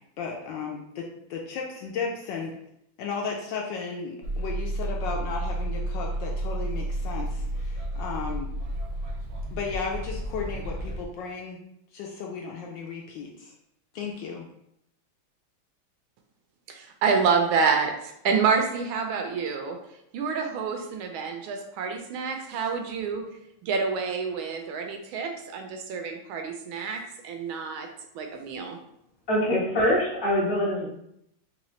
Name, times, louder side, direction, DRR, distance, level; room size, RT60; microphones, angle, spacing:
voice 1, 0.2-2.6 3.0-8.5 9.5-11.6 11.9-13.5 13.9-14.5, left 5 dB, 75° left, 0 dB, 1.1 m, -34 dB
sound 1, 4.2-11.0, right 1 dB, 65° right, 1.0 m, -31 dB
voice 2, 16.7-19.8 20.1-23.3 23.6-27.9 28.1-28.8, right 5 dB, 80° right, 4 dB, 1.4 m, -28 dB
voice 3, 29.3-30.9, equal, 20° left, -7 dB, 0.7 m, -24 dB
3.8 x 2.9 x 3.1 m, 0.77 s
omnidirectional pair, 2.3 m